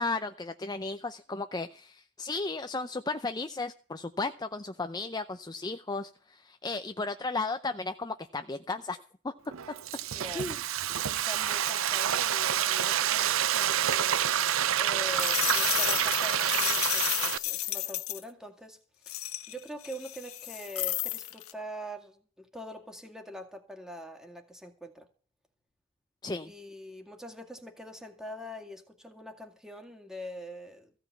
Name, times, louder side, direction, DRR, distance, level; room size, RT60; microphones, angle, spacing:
voice 1, 0.0-9.0 9.2-9.3 10.4-10.6 26.2-26.5, left 3 dB, 20° left, 0.6 m, -34 dB
Frying (food), 9.5-17.4, right 10 dB, 70° right, 0.6 m, -28 dB
voice 2, 10.1-10.6 11.0-18.8 19.1-19.2 19.5-25.1 26.4-30.9, equal, ahead, 2.0 m, -44 dB
sound 1, 13.9-18.2 19.1-21.5, left 15 dB, 85° left, 1.3 m, -32 dB
15.5 x 5.9 x 9.2 m
head